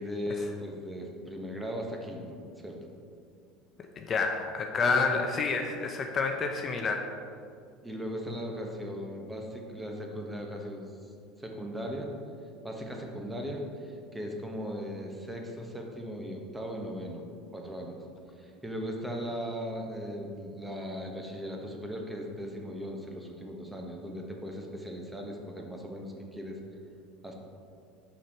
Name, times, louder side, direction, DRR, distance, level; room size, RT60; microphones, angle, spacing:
voice 1, 0.0-2.8 4.7-5.0 7.8-11.1 11.4-12.1 12.6-18.0 18.4-26.6 27.2-27.3, equal, 10° right, 1 dB, 1.2 m, -38 dB
voice 2, 4.0-7.0, left 4 dB, 35° left, 3 dB, 0.6 m, -29 dB
6.5 x 5.5 x 4.4 m, 2.4 s
hypercardioid pair, 70°, 0 cm